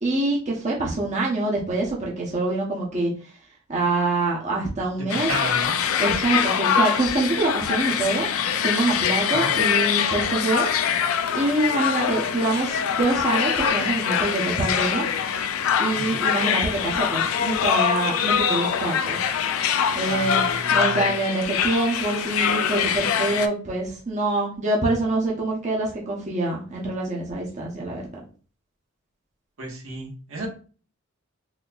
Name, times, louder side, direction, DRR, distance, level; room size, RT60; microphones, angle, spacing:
voice 1, 0.0-3.1 3.7-5.3 6.0-8.3 8.6-10.7 11.3-15.1 15.8-19.2 19.9-28.0, right 2 dB, 35° right, -3 dB, 0.9 m, -25 dB
voice 2, 5.0-5.8 9.4-9.5 16.0-16.2 20.1-21.1 29.6-30.5, right 1 dB, 75° right, -1 dB, 1.2 m, -32 dB
sound 1, 5.1-23.5, left 8 dB, 85° left, 0.4 m, -24 dB
4.0 x 2.9 x 2.3 m, 0.39 s
head